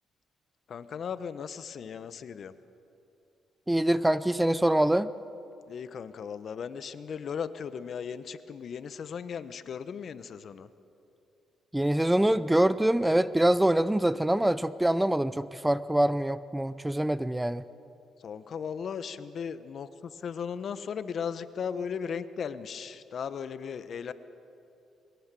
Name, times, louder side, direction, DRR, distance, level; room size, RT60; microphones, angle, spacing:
voice 1, 0.7-2.6 5.6-10.7 18.2-24.1, left 7 dB, 55° left, 14 dB, 0.9 m, -37 dB
voice 2, 3.7-5.1 11.7-17.6, right 1 dB, 10° right, 16 dB, 0.5 m, -25 dB
22.0 x 18.0 x 7.5 m, 2.7 s
cardioid pair, 90°, 0 cm